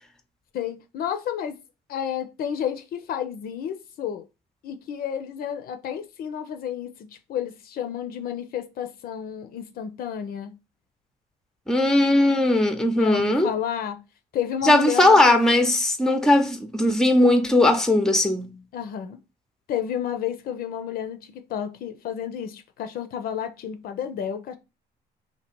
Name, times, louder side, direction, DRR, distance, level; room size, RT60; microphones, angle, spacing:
voice 1, 0.5-1.6 1.9-4.2 4.6-6.9 7.3-10.5 13.0-14.0 14.3-15.4 18.7-19.2 19.7-24.6, left 9 dB, 60° left, 0.6 m, -31 dB
voice 2, 11.7-13.5 14.6-18.5, left 1 dB, 5° left, 0.7 m, -19 dB
2.9 x 2.7 x 4.4 m
cardioid pair, 110°, 17 cm